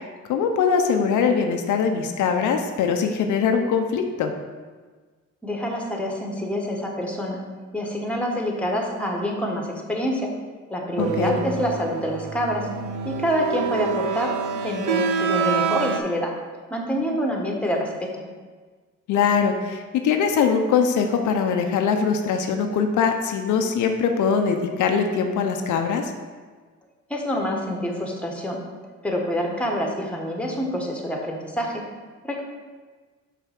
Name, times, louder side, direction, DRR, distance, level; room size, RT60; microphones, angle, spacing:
voice 1, 0.3-4.3 11.0-11.4 19.1-26.1, left 6 dB, 80° left, 4 dB, 0.8 m, -22 dB
voice 2, 5.4-7.4 7.7-10.3 10.7-12.7 13.0-16.3 16.7-18.2 27.1-28.6 29.0-31.9 32.2-32.4, equal, 5° left, 0 dB, 1.4 m, -26 dB
sound 1, 11.0-16.0, right 6 dB, 85° right, 0.7 m, -27 dB
5.8 x 4.3 x 5.9 m, 1.4 s
cardioid pair, 90°, 30 cm